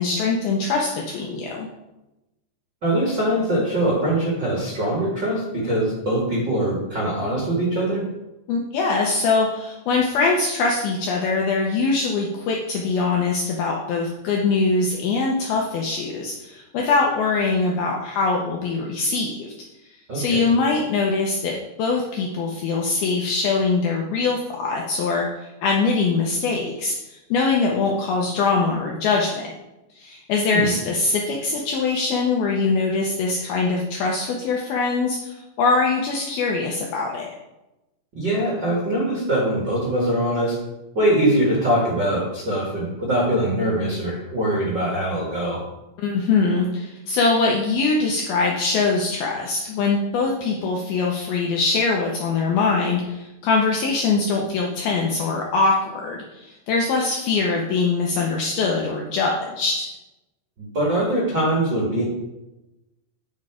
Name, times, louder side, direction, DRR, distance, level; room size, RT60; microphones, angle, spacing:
voice 1, 0.0-1.7 8.5-19.5 20.1-29.6 29.9-37.4 46.0-59.9, left 4 dB, 80° left, -1 dB, 2.2 m, -22 dB
voice 2, 2.8-8.0 20.1-20.4 30.5-30.7 38.1-40.6 40.9-45.6 60.6-62.0, right 1 dB, 50° right, -6 dB, 1.3 m, -22 dB
9.7 x 5.4 x 4.9 m, 0.99 s
omnidirectional pair, 5.3 m